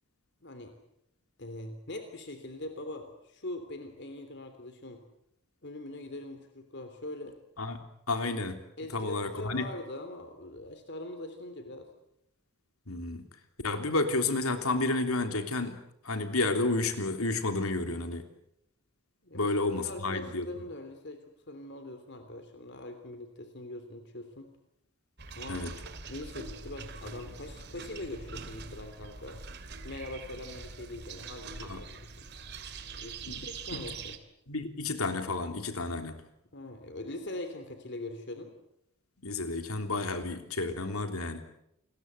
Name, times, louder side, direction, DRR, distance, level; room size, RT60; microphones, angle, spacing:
voice 1, 0.4-0.8 1.4-5.0 5.6-7.3 8.8-11.9 17.8-18.0 19.2-19.5 19.8-24.5 25.3-25.7 26.1-29.4 29.8-32.3 33.0-34.2 36.5-38.5, left 1 dB, 55° left, 8 dB, 3.2 m, -42 dB
voice 2, 8.1-8.6 8.9-9.7 12.9-13.3 13.6-15.8 16.0-18.3 19.3-20.5 25.5-25.7 31.6-31.8 33.3-33.4 33.7-33.8 34.5-36.2 39.2-41.4, left 2 dB, 85° left, 6 dB, 3.3 m, -31 dB
sound 1, 25.2-34.2, right 4 dB, 50° right, 2.6 m, -43 dB
29.5 x 22.0 x 8.2 m, 0.79 s
head